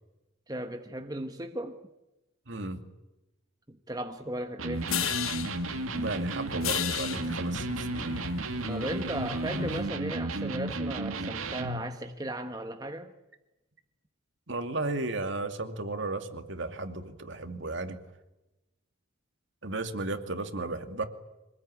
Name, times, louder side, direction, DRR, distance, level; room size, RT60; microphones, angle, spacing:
voice 1, 0.5-1.8 3.7-4.9 8.7-13.1, right 1 dB, 20° right, 1.3 m, -36 dB
voice 2, 2.5-2.8 5.9-8.1 14.5-18.0 19.6-21.0, right 2 dB, 60° right, 2.5 m, -34 dB
Electric guitar, 4.6-11.9, right 2 dB, 85° right, 2.3 m, -33 dB
sound 1, 4.7-9.9, left 8 dB, 80° left, 1.2 m, -35 dB
25.5 x 20.0 x 9.8 m
head